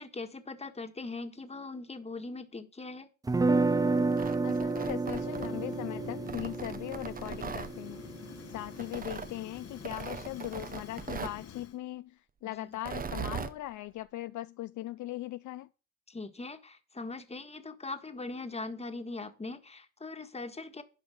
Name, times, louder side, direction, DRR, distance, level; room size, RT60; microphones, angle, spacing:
voice 1, 0.0-3.1 12.4-12.8 16.1-20.8, left 3 dB, 20° left, 1.6 m, -41 dB
sound 1, 3.3-9.2, right 3 dB, 10° right, 0.4 m, -31 dB
Tearing, 4.0-5.8 6.3-7.7 8.8-9.3 9.8-11.4 12.7-13.6, right 6 dB, 30° right, 0.8 m, -39 dB
voice 2, 4.4-8.0 8.5-15.7, left 15 dB, 75° left, 0.5 m, -39 dB
Fire, 5.1-11.8, left 8 dB, 55° left, 1.2 m, -47 dB
11.5 x 5.0 x 7.9 m
cardioid pair, 90°, 30 cm